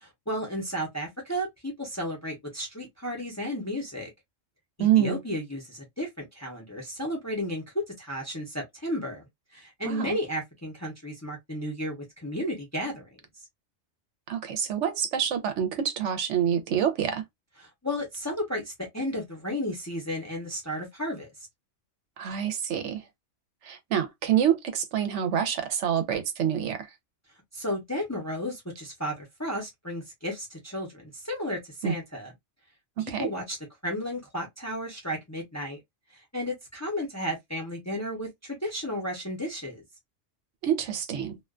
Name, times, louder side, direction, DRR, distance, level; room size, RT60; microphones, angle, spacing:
voice 1, 0.0-4.1 5.0-9.2 9.5-13.1 17.8-21.3 27.5-32.3 33.0-33.6 33.8-35.8 36.3-39.8, equal, 15° left, 0.6 m, -33 dB
voice 2, 4.8-5.2 9.9-10.2 14.3-17.2 22.2-23.0 23.6-26.8 31.8-31.9 33.0-33.3 40.6-41.4, right 9 dB, 70° right, 0.9 m, -26 dB
2.4 x 2.2 x 2.3 m
omnidirectional pair, 1.3 m